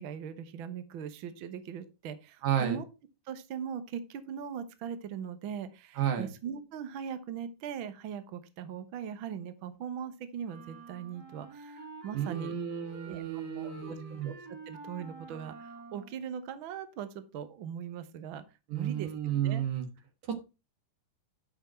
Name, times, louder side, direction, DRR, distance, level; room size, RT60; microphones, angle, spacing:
voice 1, 0.0-2.9 3.3-12.6 13.0-13.2 13.6-14.4 14.7-18.4 18.7-19.6, right 8 dB, 85° right, 11 dB, 1.1 m, -40 dB
voice 2, 2.4-2.8 6.0-6.3 12.1-14.3 18.7-19.9 20.3-20.4, right 9 dB, 65° right, 6 dB, 2.9 m, -32 dB
sound 1, 10.4-16.2, right 3 dB, 35° right, 2.5 m, -49 dB
10.5 x 6.1 x 4.4 m, 0.28 s
omnidirectional pair, 3.9 m